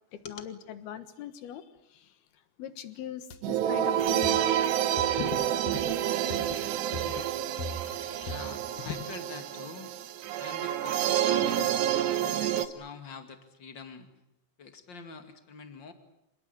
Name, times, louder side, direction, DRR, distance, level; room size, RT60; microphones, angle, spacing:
voice 1, 0.1-2.2 2.6-4.4 5.2-6.0 6.3-6.6 6.9-7.2 7.8-8.4 8.9-9.1, left 10 dB, 65° left, 11 dB, 3.2 m, -41 dB
sound 1, 3.3-3.5 4.2-4.5 5.0-5.3 5.7-6.0 6.3-6.6 6.9-8.0 8.3-8.7, left 1 dB, 50° left, 2.2 m, -41 dB
sound 2, 3.4-12.7, right 11 dB, 75° right, 3.2 m, -28 dB
voice 2, 8.2-9.9 10.4-14.1 14.6-15.9, left 5 dB, 35° left, 7 dB, 2.1 m, -45 dB
26.5 x 20.0 x 9.8 m, 0.82 s
omnidirectional pair, 5.1 m